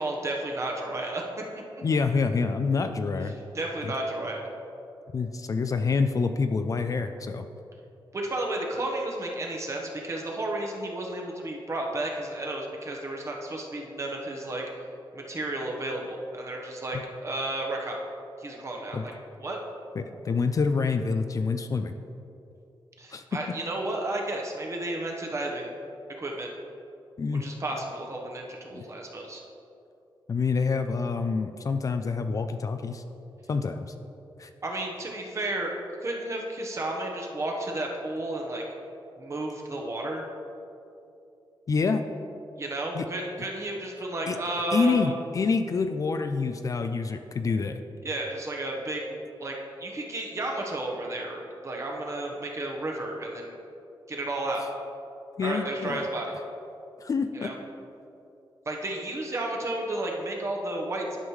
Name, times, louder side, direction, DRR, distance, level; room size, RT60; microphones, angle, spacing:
voice 1, 0.0-1.4 3.5-4.5 8.1-14.6 15.1-18.0 18.4-19.1 19.4-19.6 23.0-25.7 26.2-26.5 27.4-29.4 34.6-35.7 36.0-38.6 39.2-40.3 42.6-45.2 48.0-53.6 54.1-54.6 55.4-56.3 57.3-57.5 58.7-61.2, right 2 dB, 35° right, 0 dB, 1.0 m, -32 dB
voice 2, 1.8-3.3 3.8-3.9 5.1-7.4 16.9-17.0 18.9-19.0 20.0-21.9 23.1-23.2 27.2-27.5 28.7-28.8 30.3-33.0 33.5-33.9 34.4-34.5 41.7-42.0 42.9-43.1 44.3-44.4 44.7-47.8 55.4-56.1 57.0-57.5, left 4 dB, 40° left, 8 dB, 0.3 m, -27 dB
11.0 x 5.4 x 3.2 m, 2.8 s
wide cardioid pair, 115°, 9 cm